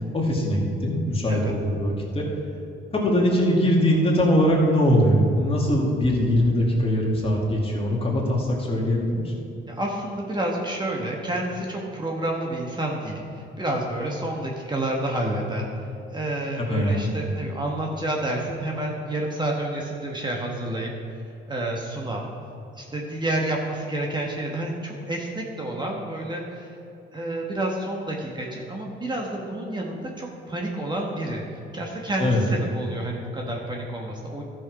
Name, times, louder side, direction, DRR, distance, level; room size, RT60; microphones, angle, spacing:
voice 1, 0.1-2.3 2.9-9.3 16.6-17.1 32.2-32.4, equal, 30° left, -2 dB, 2.4 m, -22 dB
voice 2, 9.7-15.7 16.1-20.9 21.5-22.3 22.7-26.7 27.1-31.4 31.7-34.4, right 1 dB, 20° right, -1 dB, 1.3 m, -29 dB
12.5 x 6.4 x 4.8 m, 2.7 s
cardioid pair, 90°, 20 cm